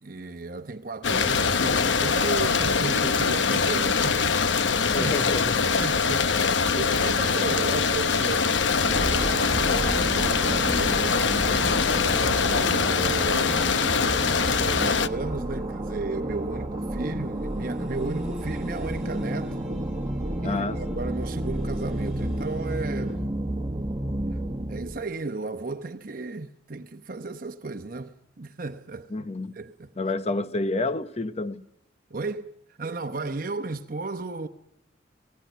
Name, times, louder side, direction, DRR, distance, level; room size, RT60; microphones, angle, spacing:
voice 1, 0.0-5.2 5.8-11.6 12.3-13.7 14.4-19.6 20.4-23.2 24.7-29.1 29.5-29.9 32.1-34.5, right 3 dB, 50° right, 0.9 m, -34 dB
sound 1, 1.0-15.1, left 5 dB, 90° left, 0.9 m, -23 dB
voice 2, 4.8-5.7 20.4-21.0 29.1-29.5 30.0-31.6, left 2 dB, 35° left, 0.9 m, -29 dB
sound 2, 8.8-25.0, right 1 dB, 20° right, 1.4 m, -31 dB
sound 3, 10.8-23.2, equal, ahead, 6.9 m, -46 dB
25.5 x 19.0 x 9.2 m
head